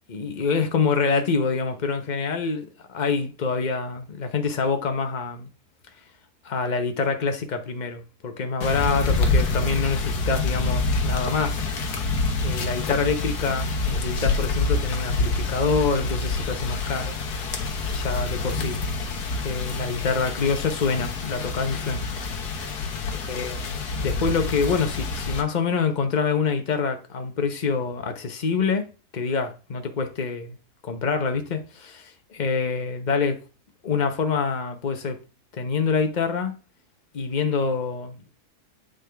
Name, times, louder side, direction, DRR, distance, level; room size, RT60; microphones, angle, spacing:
voice 1, 0.1-5.5 6.4-11.6 12.4-17.2 17.8-18.8 19.4-22.1 22.6-22.8 23.1-28.9 29.1-30.6 30.8-33.4 33.8-35.2 35.5-36.5 37.1-38.2, left 5 dB, 35° left, 0.9 m, -26 dB
sound 1, 8.6-25.4, left 3 dB, 75° left, 1.6 m, -27 dB
8.2 x 5.2 x 3.4 m
omnidirectional pair, 1.7 m